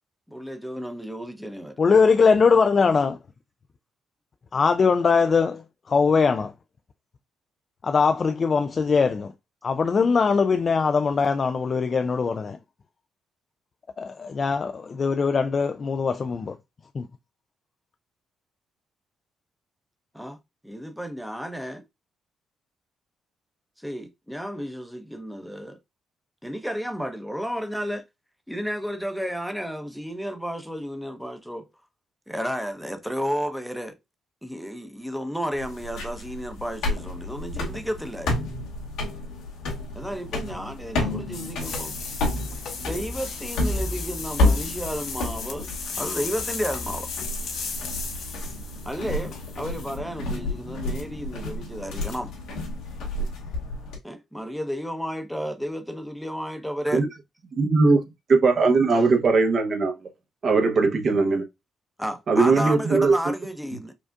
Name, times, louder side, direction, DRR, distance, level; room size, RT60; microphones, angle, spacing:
voice 1, 0.3-1.8 20.1-20.4 20.6-21.8 23.8-25.8 26.4-28.0 28.5-31.7 32.3-34.0 34.4-38.3 39.9-42.0 42.8-45.7 46.0-47.1 48.9-52.3 54.0-57.0 62.0-63.9, equal, ahead, 0.8 m, -32 dB
voice 2, 1.8-3.2 4.5-6.5 7.8-9.3 9.6-12.6 14.0-16.6 16.9-17.1, left 5 dB, 40° left, 0.3 m, -21 dB
sound 1, 35.5-54.0, left 1 dB, 90° left, 1.8 m, -30 dB
sound 2, 41.6-50.0, left 5 dB, 70° left, 2.0 m, -35 dB
voice 3, 57.6-58.0 58.3-59.9 60.4-61.4 62.3-63.2, right 3 dB, 50° right, 0.9 m, -19 dB
5.1 x 2.4 x 2.3 m
cardioid pair, 90°, 0 cm